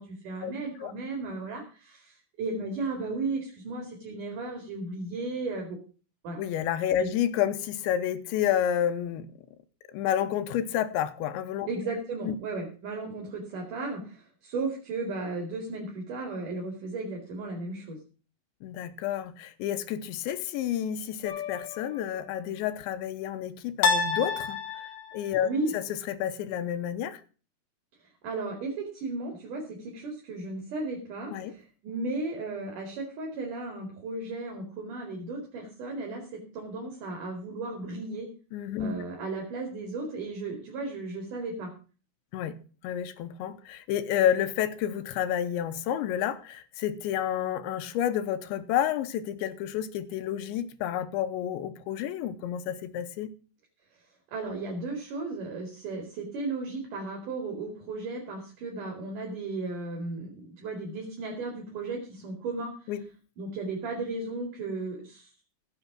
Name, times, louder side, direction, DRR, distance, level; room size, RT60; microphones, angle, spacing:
voice 1, 0.0-5.8 6.2-6.4 7.0-7.1 11.7-18.0 25.4-25.7 28.2-38.3 38.8-41.7 54.3-62.9 63.4-65.3, right 3 dB, 50° right, 3.6 m, -35 dB
voice 2, 6.4-9.3 9.9-11.7 18.6-24.8 25.1-27.2 31.3-31.5 38.5-38.9 42.3-42.6 42.8-53.3 62.9-63.0, left 10 dB, 80° left, 3.1 m, -30 dB
sound 1, 21.2-22.0 23.8-25.3, left 5 dB, 60° left, 2.2 m, -29 dB
16.0 x 7.0 x 6.1 m
omnidirectional pair, 5.3 m